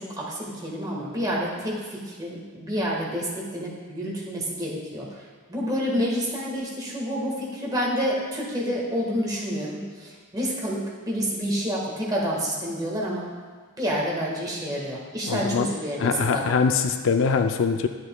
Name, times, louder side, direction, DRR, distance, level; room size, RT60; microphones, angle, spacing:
voice 1, 0.0-5.1 5.5-13.2 13.8-16.4, equal, 20° right, -4 dB, 1.4 m, -28 dB
voice 2, 15.3-15.7 16.0-17.9, left 5 dB, 60° left, 7 dB, 0.4 m, -23 dB
9.6 x 7.7 x 2.2 m, 1.5 s
head